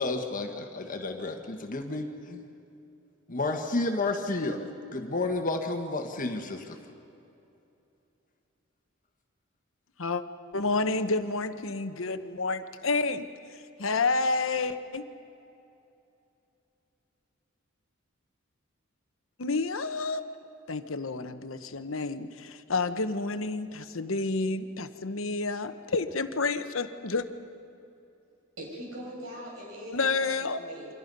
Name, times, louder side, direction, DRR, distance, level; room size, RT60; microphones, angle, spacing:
voice 1, 0.0-2.4 3.3-4.6 4.9-6.8, left 2 dB, 40° left, 4 dB, 1.4 m, -31 dB
voice 2, 10.5-13.3 13.8-15.0 19.4-20.3 20.7-27.3 29.9-30.6, left 3 dB, 70° left, 10 dB, 1.1 m, -29 dB
voice 3, 28.6-30.3 30.6-30.9, equal, 80° right, -3 dB, 7.3 m, -41 dB
29.0 x 24.5 x 5.4 m, 2.8 s
head